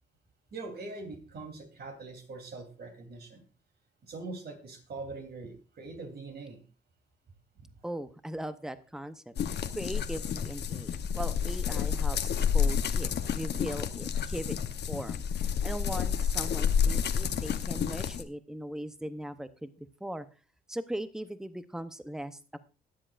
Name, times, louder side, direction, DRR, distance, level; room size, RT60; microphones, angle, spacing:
voice 1, 0.5-3.4 4.0-6.6 7.6-7.7, right 3 dB, 55° right, 3 dB, 3.3 m, -42 dB
voice 2, 7.8-14.6 14.9-20.3 20.7-22.6, right 1 dB, 5° right, 11 dB, 0.7 m, -39 dB
sound 1, 9.4-18.2, left 7 dB, 60° left, 0.9 m, -30 dB
21.0 x 7.6 x 2.5 m, 0.34 s
cardioid pair, 90°, 20 cm